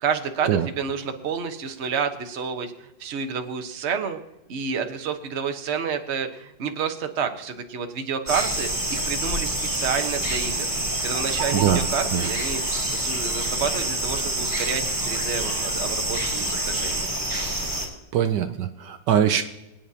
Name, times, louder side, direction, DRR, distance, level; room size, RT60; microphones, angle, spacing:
voice 1, 0.0-4.2 4.5-10.7 11.0-12.6 12.9-17.1, right 6 dB, 45° right, 6 dB, 1.2 m, -29 dB
sound 1, 8.3-17.9, right 1 dB, 10° right, 4.2 m, -27 dB
voice 2, 11.5-11.9 12.1-12.2 18.1-19.4, right 9 dB, 75° right, 8 dB, 1.2 m, -22 dB
25.5 x 9.2 x 2.8 m, 0.97 s
omnidirectional pair, 2.0 m